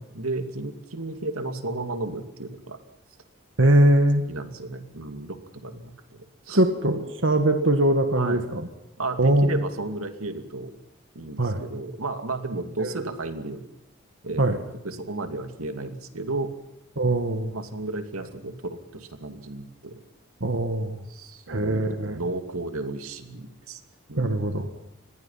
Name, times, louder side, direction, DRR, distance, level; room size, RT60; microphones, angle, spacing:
voice 1, 0.1-2.8 4.3-6.6 8.2-8.4 9.0-10.7 11.1-13.6 14.2-14.5 14.8-16.5 17.5-19.9 21.1-23.8 24.1-24.5, right 2 dB, 85° right, 7 dB, 2.6 m, -33 dB
voice 2, 3.6-4.2 6.5-8.7 9.2-9.7 11.4-11.6 12.8-13.1 14.4-14.6 17.0-17.5 20.4-21.0 21.5-22.2 24.2-24.7, right 1 dB, 60° right, 6 dB, 1.7 m, -22 dB
28.0 x 21.0 x 5.8 m, 0.87 s
head